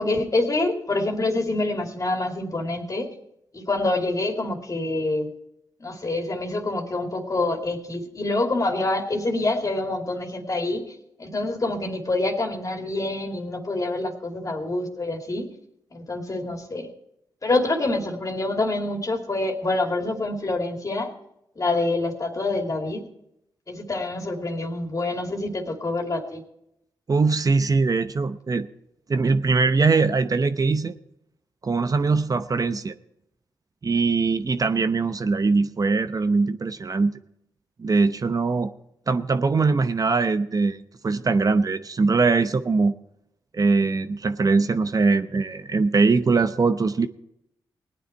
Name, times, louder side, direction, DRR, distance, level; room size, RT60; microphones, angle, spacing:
voice 1, 0.0-3.1 3.5-5.3 5.8-15.5 15.9-16.9 17.4-21.1 21.6-23.0 23.7-26.4, left 2 dB, 40° left, 3 dB, 2.6 m, -26 dB
voice 2, 27.1-28.7 29.1-30.9 31.6-32.9 33.8-37.2 37.8-38.7 39.1-42.9 43.5-47.1, right 4 dB, 45° right, 9 dB, 0.8 m, -22 dB
18.0 x 9.6 x 4.5 m, 0.79 s
supercardioid pair, 50°, 9 cm